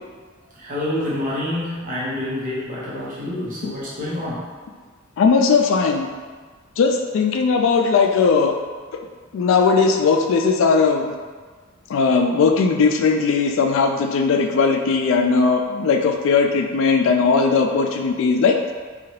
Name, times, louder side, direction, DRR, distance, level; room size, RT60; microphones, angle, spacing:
voice 1, 0.6-4.4, left 1 dB, 45° right, -8 dB, 0.9 m, -27 dB
voice 2, 5.2-6.1 6.8-8.5 9.3-11.1 11.9-18.7, left 4 dB, 70° left, 3 dB, 0.3 m, -18 dB
2.8 x 2.3 x 2.9 m, 1.5 s
head